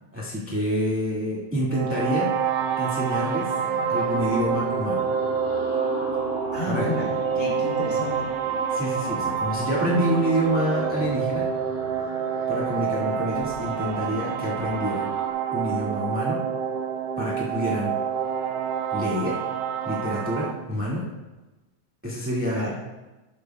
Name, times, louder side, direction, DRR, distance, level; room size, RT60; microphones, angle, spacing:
voice 1, 0.1-2.3 2.8-3.5 3.9-5.0 6.7-6.9 8.7-11.5 12.5-15.1 15.5-16.4 17.2-18.0 18.9-19.4 19.8-21.0 22.0-22.7, equal, 5° right, -6 dB, 1.0 m, -27 dB
sound 1, 1.7-20.5, right 7 dB, 75° right, 1.6 m, -27 dB
sound 2, 3.5-15.3, left 1 dB, 45° left, 4.3 m, -39 dB
voice 2, 6.5-8.3 22.5-22.7, left 1 dB, 20° left, -4 dB, 3.0 m, -31 dB
13.5 x 12.0 x 2.3 m, 1.1 s
omnidirectional pair, 3.3 m